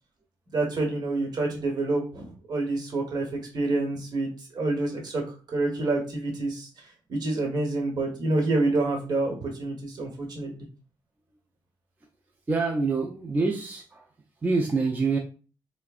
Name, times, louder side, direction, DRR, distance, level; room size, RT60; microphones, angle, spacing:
voice 1, 0.5-3.2 3.5-6.7 7.1-10.5, right 2 dB, 50° right, 2 dB, 1.1 m, -27 dB
voice 2, 12.5-14.1 14.4-15.2, right 4 dB, 20° right, 0 dB, 0.4 m, -26 dB
3.3 x 2.1 x 2.4 m, 0.36 s
cardioid pair, 85°, 9 cm